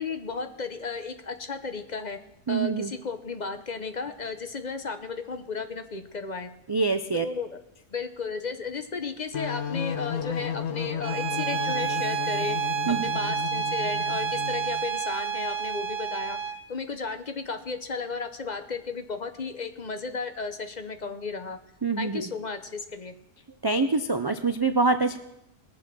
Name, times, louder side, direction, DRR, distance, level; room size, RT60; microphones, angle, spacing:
voice 1, 0.0-2.2 2.5-6.5 7.1-7.5 7.9-12.6 13.0-21.6 22.0-23.1, left 4 dB, 40° left, 8 dB, 0.9 m, -34 dB
voice 2, 2.5-2.9 6.7-7.3 12.9-13.1 21.8-22.3 23.6-25.2, right 3 dB, 35° right, 8 dB, 0.4 m, -25 dB
sound 1, 9.3-14.8, left 8 dB, 70° left, 1.1 m, -33 dB
Bowed string instrument, 11.0-16.6, right 7 dB, 55° right, 1.1 m, -29 dB
20.5 x 7.5 x 6.1 m, 0.83 s
omnidirectional pair, 1.2 m